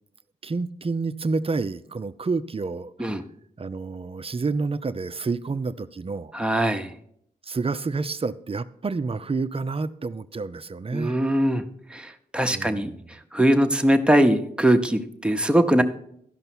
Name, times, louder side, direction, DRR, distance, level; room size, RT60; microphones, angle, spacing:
voice 1, 0.4-2.9 3.6-6.3 7.4-11.2 12.5-13.1, right 4 dB, 30° right, 13 dB, 0.6 m, -29 dB
voice 2, 6.3-6.9 10.9-11.6 11.9-12.9 13.3-15.8, right 1 dB, 5° right, 6 dB, 0.9 m, -21 dB
11.5 x 5.5 x 6.1 m, 0.71 s
supercardioid pair, 40°, 19 cm